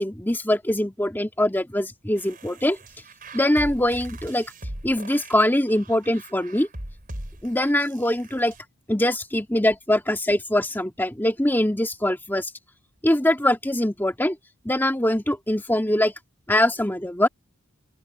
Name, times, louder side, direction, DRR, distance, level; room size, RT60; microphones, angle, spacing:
voice 1, 0.0-2.8 3.3-4.5 4.8-6.7 7.4-8.5 8.9-12.5 13.0-14.4 14.7-16.1 16.5-17.3, left 1 dB, 10° left, 1.7 m, -23 dB
sound 1, 2.2-8.6, right 1 dB, 40° right, 4.6 m, -40 dB
open air
head